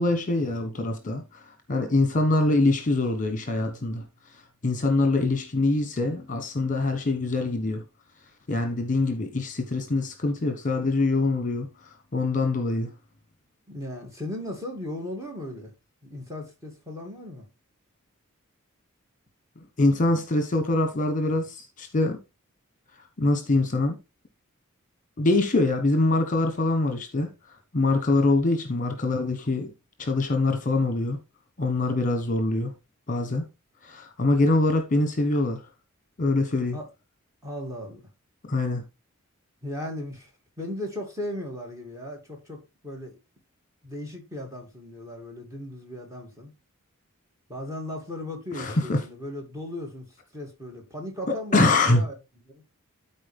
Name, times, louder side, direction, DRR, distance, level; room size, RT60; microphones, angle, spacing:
voice 1, 0.0-4.1 4.3-7.8 8.5-12.9 19.8-22.2 23.2-24.0 25.2-29.7 30.0-31.2 31.6-32.7 33.1-33.5 33.8-35.6 36.2-36.8 38.5-38.8 48.5-49.0 51.5-52.0, left 2 dB, 35° left, 1.2 m, -24 dB
voice 2, 13.7-15.7 16.0-17.5 36.7-36.9 37.4-38.0 39.6-40.3 40.6-43.2 43.8-46.5 47.5-52.2 52.5-52.6, left 1 dB, 15° right, 2.6 m, -37 dB
13.0 x 4.3 x 3.5 m
head